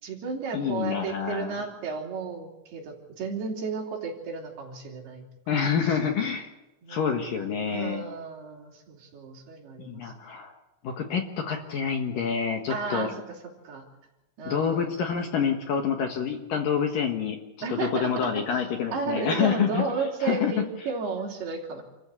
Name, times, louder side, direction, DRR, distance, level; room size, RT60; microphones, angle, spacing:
voice 1, 0.0-5.2 5.5-6.0 6.8-7.1 7.4-10.1 12.7-13.4 13.6-13.8 14.4-15.0 17.6-18.4 18.9-21.8, right 4 dB, 60° right, 0 dB, 5.0 m, -33 dB
voice 2, 0.5-1.6 5.5-6.5 6.9-8.0 9.8-10.5 10.8-13.1 14.5-17.4 17.7-19.8 20.2-20.5, left 7 dB, 60° left, 4 dB, 2.7 m, -27 dB
27.0 x 14.5 x 8.4 m, 1.0 s
omnidirectional pair, 5.2 m